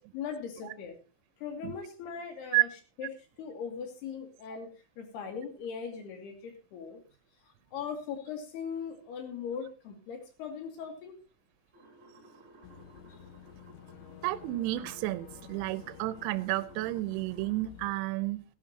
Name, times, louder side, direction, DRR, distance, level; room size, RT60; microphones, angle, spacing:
voice 1, 0.1-1.0 1.4-2.7 3.0-3.1 3.4-7.0 7.7-11.1, left 6 dB, 55° left, 4 dB, 4.1 m, -39 dB
sound 1, 11.7-17.6, right 2 dB, 20° right, 2.0 m, -56 dB
Boat Water vehicle / Engine, 12.6-17.9, left 12 dB, 80° left, 2.7 m, -52 dB
voice 2, 14.2-18.4, right 18 dB, 80° right, 13 dB, 2.8 m, -31 dB
18.5 x 11.5 x 2.9 m, 0.36 s
omnidirectional pair, 5.9 m